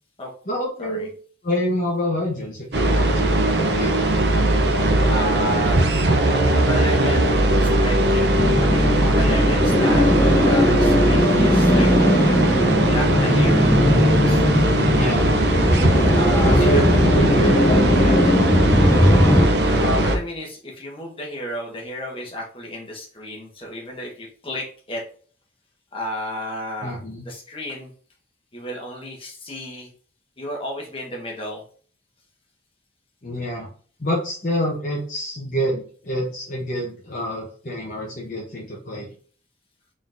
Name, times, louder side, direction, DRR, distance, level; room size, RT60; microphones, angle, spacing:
voice 1, 0.5-1.1 1.4-3.3 3.7-4.1 14.9-15.3 16.4-18.3 26.8-27.3 33.2-33.7 34.0-39.1, equal, 45° left, -2 dB, 0.9 m, -26 dB
sound 1, 2.7-20.2, right 1 dB, 65° right, 0.6 m, -19 dB
voice 2, 4.7-5.8 6.5-7.3 7.6-8.2 8.6-11.9 12.2-13.8 14.3-14.5 16.1-16.8 19.1-19.2 19.5-25.0 25.9-27.9 28.5-29.9 30.4-31.6, equal, 30° left, -1 dB, 1.3 m, -32 dB
sound 2, 8.4-19.5, left 1 dB, 15° left, 0.5 m, -19 dB
3.9 x 3.9 x 2.5 m, 0.44 s
head